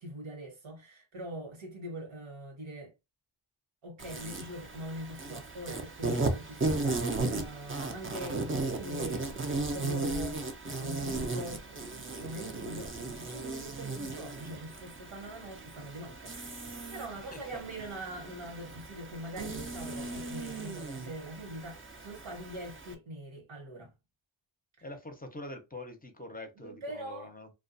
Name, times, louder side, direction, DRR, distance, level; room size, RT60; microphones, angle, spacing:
voice 1, 0.0-2.9 3.8-16.6 16.9-23.9 26.6-27.3, right 1 dB, 80° right, 1.2 m, -43 dB
Insect, 4.0-22.9, right 3 dB, 25° right, 0.5 m, -36 dB
voice 2, 17.3-17.6 24.8-27.5, left 2 dB, 20° left, 0.6 m, -44 dB
2.3 x 2.2 x 2.5 m
cardioid pair, 55°, 47 cm